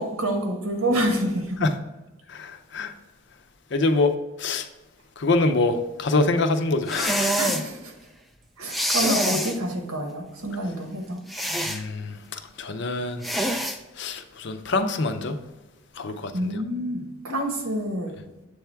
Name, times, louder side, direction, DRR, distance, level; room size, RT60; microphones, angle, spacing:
voice 1, 0.0-1.6 7.4-7.9 8.6-11.2 16.3-18.1, right 1 dB, 85° right, 1.1 m, -27 dB
voice 2, 2.3-2.9 3.7-4.7 5.2-7.4 11.7-13.3 14.0-15.4 15.9-16.6, left 3 dB, 55° left, 0.5 m, -25 dB
sound 1, 6.9-7.7 8.7-9.6 11.3-11.8 13.2-13.8, equal, ahead, 0.3 m, -25 dB
7.7 x 3.5 x 4.4 m
head